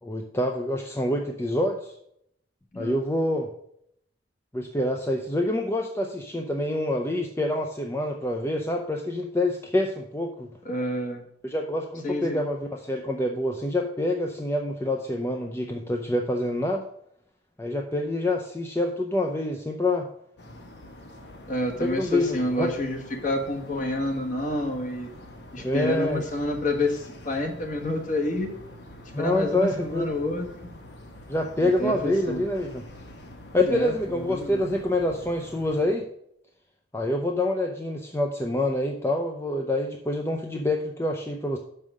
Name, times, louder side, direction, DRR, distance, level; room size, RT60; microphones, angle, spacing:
voice 1, 0.0-1.9 2.8-3.5 4.5-10.5 11.4-16.8 17.6-20.1 21.8-22.7 25.6-26.2 29.1-30.1 31.3-32.8 33.5-36.0 36.9-41.6, left 1 dB, 15° left, 2 dB, 0.5 m, -26 dB
voice 2, 10.6-11.2 12.0-12.4 21.5-25.1 25.5-28.5 29.2-30.5 31.6-32.4 33.7-33.9 34.3-34.6, left 1 dB, 40° left, 2 dB, 1.3 m, -28 dB
sound 1, 20.4-35.8, left 1 dB, 60° left, 1.0 m, -46 dB
6.2 x 5.5 x 6.4 m, 0.73 s
head